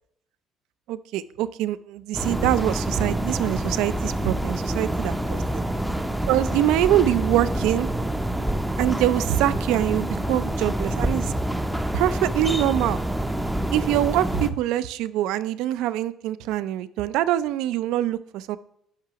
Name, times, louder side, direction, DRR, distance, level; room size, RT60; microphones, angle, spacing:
voice 1, 0.9-5.6 6.3-7.9 8.8-11.3 11.9-13.0 13.7-18.6, right 13 dB, 75° right, 15 dB, 0.4 m, -24 dB
sound 1, 2.1-14.5, right 1 dB, 5° right, 0.5 m, -27 dB
10.0 x 5.9 x 2.9 m, 0.73 s
cardioid pair, 135°, 0 cm